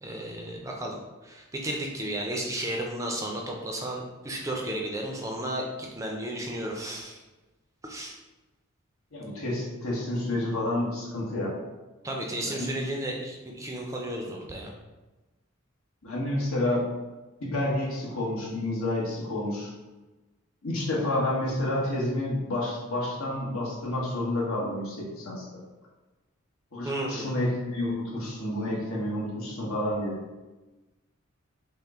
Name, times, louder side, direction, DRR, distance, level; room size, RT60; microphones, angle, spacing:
voice 1, 0.0-7.2 7.8-8.2 12.0-14.7 26.8-27.3, right 1 dB, 15° right, 0 dB, 0.4 m, -33 dB
voice 2, 9.1-11.5 12.4-13.0 16.0-16.8 17.4-19.7 20.6-25.6 26.7-30.2, left 1 dB, 75° left, -4 dB, 1.2 m, -29 dB
5.4 x 2.1 x 3.6 m, 1.1 s
head